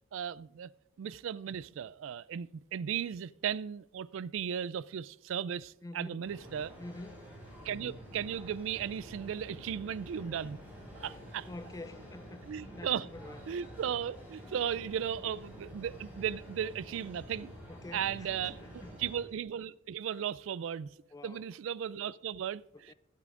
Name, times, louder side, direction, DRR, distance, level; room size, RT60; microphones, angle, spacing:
voice 1, 0.1-0.7 1.0-6.7 7.6-10.6 11.0-11.5 12.4-13.1 13.5-17.5 17.9-18.6 19.0-20.9 21.2-22.9, right 8 dB, 70° right, 0.3 m, -36 dB
voice 2, 5.8-6.2 6.8-7.3 11.0-13.4 17.7-18.9 21.1-21.4 22.9-23.0, left 2 dB, 15° left, 0.3 m, -47 dB
sound 1, 6.2-19.2, equal, 10° right, 5.0 m, -49 dB
22.5 x 8.4 x 2.5 m
head